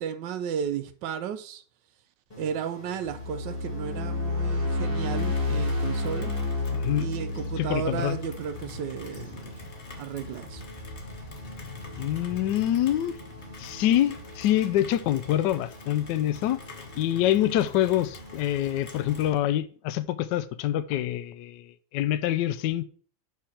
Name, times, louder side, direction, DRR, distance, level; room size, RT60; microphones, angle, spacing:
voice 1, 0.0-1.6 2.4-6.3 7.0-9.5 10.0-10.6, right 8 dB, 70° right, 1.2 m, -33 dB
sound 1, 2.3-19.3, left 2 dB, 20° left, 2.3 m, -47 dB
sound 2, 3.1-9.3, left 3 dB, 10° right, 2.1 m, -30 dB
Rain, 5.2-19.4, left 1 dB, 40° left, 1.2 m, -44 dB
voice 2, 6.7-7.1 7.6-8.2 12.0-13.2 13.6-16.6 17.0-22.9, left 12 dB, 75° left, 1.1 m, -26 dB
5.7 x 4.8 x 5.7 m
omnidirectional pair, 2.1 m